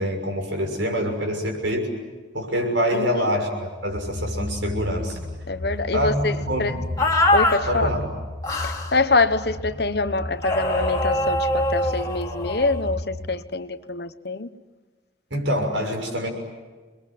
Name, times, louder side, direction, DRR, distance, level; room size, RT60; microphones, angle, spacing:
voice 1, 0.0-1.9 2.3-5.2 5.9-6.8 7.7-8.1 15.3-16.3, equal, 75° right, 6.5 m, -25 dB
voice 2, 2.9-3.3 5.5-6.3 6.6-6.7 7.3-7.9 8.6-14.5, left 3 dB, 55° left, 1.1 m, -25 dB
sound 1, 3.9-13.3, left 1 dB, 15° right, 5.4 m, -33 dB
sound 2, 7.0-7.6 8.4-8.9 10.4-12.8, left 1 dB, 20° left, 2.6 m, -23 dB
29.0 x 22.0 x 9.3 m
head